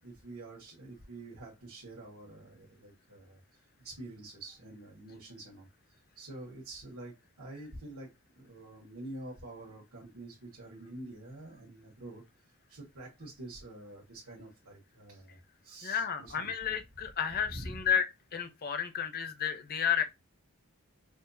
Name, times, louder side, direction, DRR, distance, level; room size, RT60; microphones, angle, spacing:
voice 1, 0.0-5.7 6.1-12.2 12.7-16.5 17.3-17.8, right 2 dB, 85° right, 1.4 m, -47 dB
voice 2, 15.8-18.1 18.3-20.0, left 8 dB, 45° left, 0.6 m, -31 dB
6.0 x 2.4 x 2.7 m
head